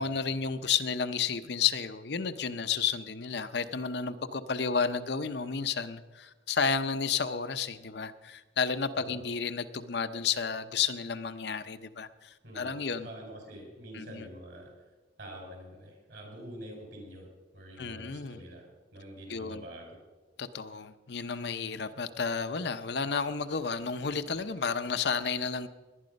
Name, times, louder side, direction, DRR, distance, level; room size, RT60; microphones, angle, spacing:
voice 1, 0.0-13.1 13.9-14.3 17.8-18.4 19.3-19.6 20.4-25.7, left 6 dB, 60° left, 10 dB, 0.7 m, -32 dB
voice 2, 12.4-14.7 15.2-18.7 18.9-20.0, equal, 60° right, 1 dB, 4.9 m, -46 dB
18.5 x 11.0 x 5.3 m, 1.2 s
head